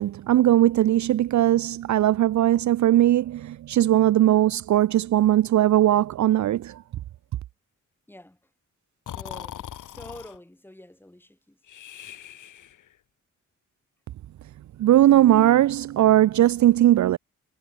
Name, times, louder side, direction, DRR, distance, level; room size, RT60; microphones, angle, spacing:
voice 1, 0.0-6.8 14.8-17.2, right 13 dB, 65° right, 0.4 m, -19 dB
voice 2, 8.1-8.4 9.1-11.6, left 1 dB, 5° left, 4.8 m, -46 dB
Breathing, 9.1-10.4 11.7-12.9, left 11 dB, 80° left, 0.9 m, -40 dB
wide cardioid pair, 160°, 31 cm